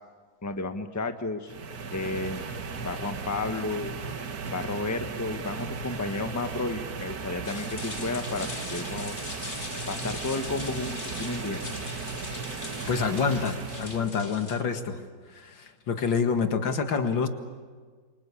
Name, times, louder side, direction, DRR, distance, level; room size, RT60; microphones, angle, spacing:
voice 1, 0.4-1.5 1.9-2.4 2.8-3.9 4.5-9.1 9.9-11.6, left 3 dB, 10° left, 7 dB, 1.1 m, -32 dB
sound 1, 1.5-14.1, right 5 dB, 55° right, 1.8 m, -36 dB
sound 2, 7.4-14.6, left 3 dB, 25° left, 1.9 m, -40 dB
voice 2, 12.9-15.0 15.4-17.3, left 5 dB, 85° left, 7 dB, 2.6 m, -27 dB
27.5 x 24.5 x 8.5 m, 1.5 s
omnidirectional pair, 2.0 m